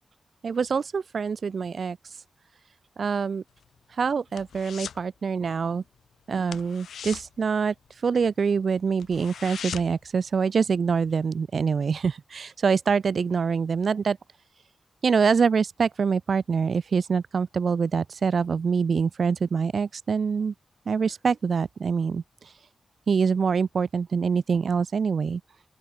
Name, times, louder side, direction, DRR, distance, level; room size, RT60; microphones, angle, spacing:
voice 1, 0.4-2.2 3.0-3.4 3.9-5.8 6.3-14.2 15.0-20.5 20.9-22.7 23.1-25.4, right 5 dB, 65° right, 0.5 m, -25 dB
sound 1, 3.5-5.1 5.4-5.7 5.9-6.1 6.4-8.3 8.7-8.8 9.0-10.1 10.5-10.6, left 8 dB, 90° left, 0.7 m, -39 dB
open air
cardioid pair, 65°, 0 cm